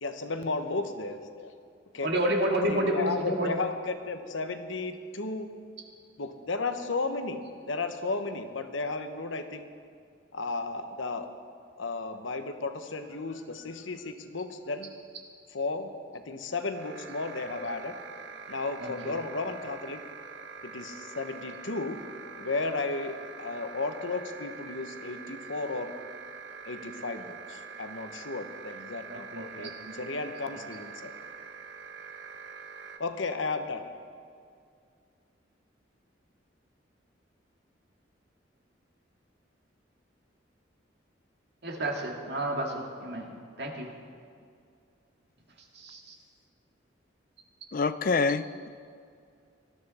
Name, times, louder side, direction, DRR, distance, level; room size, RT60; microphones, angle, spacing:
voice 1, 0.0-1.5 1.9-2.1 2.7-5.5 6.2-9.7 10.3-11.3 11.8-14.9 15.5-17.9 18.5-20.0 20.6-22.0 22.4-25.9 26.6-31.1 33.0-33.8, left 3 dB, 90° left, 8 dB, 1.0 m, -34 dB
voice 2, 2.0-3.5 18.8-19.1 29.1-30.0 41.6-43.3 43.6-43.9 45.7-46.1, right 1 dB, 60° right, 0 dB, 2.1 m, -30 dB
sound 1, 16.7-33.0, right 5 dB, 75° right, 1.0 m, -45 dB
voice 3, 47.7-48.7, left 4 dB, 45° left, 14 dB, 0.4 m, -26 dB
18.5 x 13.0 x 4.3 m, 2.3 s
head